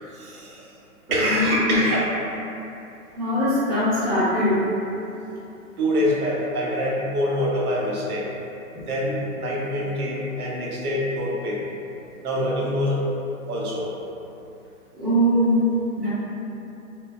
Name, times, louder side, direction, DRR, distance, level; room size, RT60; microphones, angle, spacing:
voice 1, 0.1-0.7 1.1-2.1 5.8-8.3 8.9-11.6 12.2-13.1 13.5-13.9, equal, 80° right, -4 dB, 0.8 m, -25 dB
voice 2, 1.2-1.8 3.2-4.6 8.7-8.9 14.9-15.6 16.0-16.1, equal, 20° right, -20 dB, 1.1 m, -22 dB
2.9 x 2.2 x 2.3 m, 2.8 s
hypercardioid pair, 175°, 44 cm